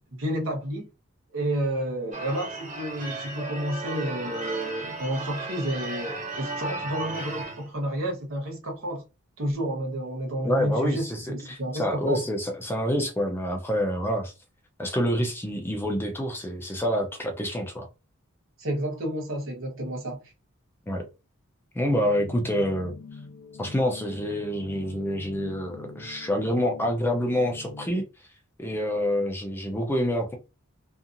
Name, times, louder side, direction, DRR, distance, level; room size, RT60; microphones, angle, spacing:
voice 1, 0.1-0.9 1.3-9.0 9.4-12.2 18.6-20.2, right 1 dB, 70° right, 1.0 m, -30 dB
Church bell / Car / Alarm, 2.1-7.7, right 2 dB, 35° right, 1.4 m, -35 dB
voice 2, 10.4-14.3 14.8-17.9 20.9-21.0 21.7-22.9 23.6-28.3 28.6-30.4, equal, 10° left, 0.4 m, -27 dB
sound 1, 22.0-27.9, left 4 dB, 75° left, 0.4 m, -44 dB
2.7 x 2.4 x 2.5 m
head